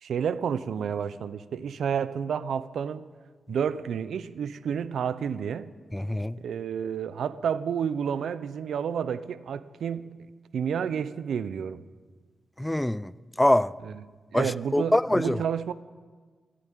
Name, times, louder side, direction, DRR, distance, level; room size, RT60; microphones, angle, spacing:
voice 1, 0.0-3.1 3.5-5.7 6.4-10.2 10.5-11.8 13.8-14.0 14.3-15.7, right 7 dB, 80° right, 0.6 m, -30 dB
voice 2, 5.9-6.4 12.6-13.1 13.4-13.7 14.3-15.4, left 1 dB, 10° left, 0.4 m, -24 dB
14.0 x 10.0 x 9.1 m
cardioid pair, 70°, 0 cm